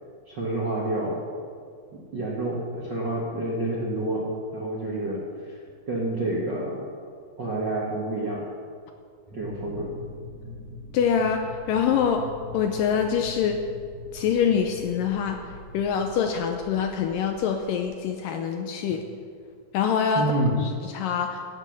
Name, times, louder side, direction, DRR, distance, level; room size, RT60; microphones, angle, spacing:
voice 1, 0.3-1.2 2.1-4.3 4.5-5.2 5.5-5.6 5.9-6.9 7.4-8.4 9.3-9.9 20.1-20.6, right 2 dB, 55° right, -5 dB, 1.2 m, -28 dB
sound 1, 9.3-17.8, left 1 dB, 10° right, 4.1 m, -42 dB
voice 2, 10.9-12.3 12.5-13.6 14.1-15.4 15.7-19.0 19.7-20.3 20.6-21.4, left 7 dB, 80° left, 5 dB, 2.1 m, -25 dB
16.5 x 7.5 x 6.6 m, 2.1 s
omnidirectional pair, 4.5 m